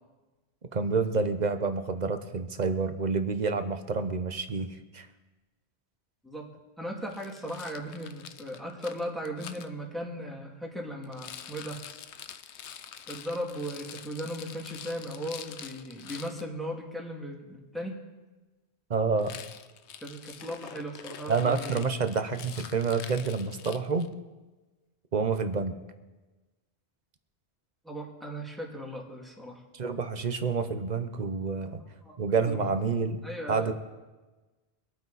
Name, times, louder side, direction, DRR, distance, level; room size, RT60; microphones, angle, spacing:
voice 1, 0.7-5.1 18.9-19.4 21.3-24.1 25.1-25.8 29.7-31.8 32.2-33.2 33.5-33.7, right 4 dB, 40° right, 8 dB, 1.0 m, -28 dB
voice 2, 6.8-11.8 13.1-17.9 20.0-21.9 27.8-29.6 31.7-31.8 32.0-32.2 32.4-32.8 33.2-33.7, equal, ahead, -2 dB, 2.3 m, -37 dB
Rattle, 7.1-9.7 11.0-16.4 19.2-24.1, left 8 dB, 80° left, 1.0 m, -46 dB
24.0 x 9.2 x 4.1 m, 1.2 s
omnidirectional pair, 1.1 m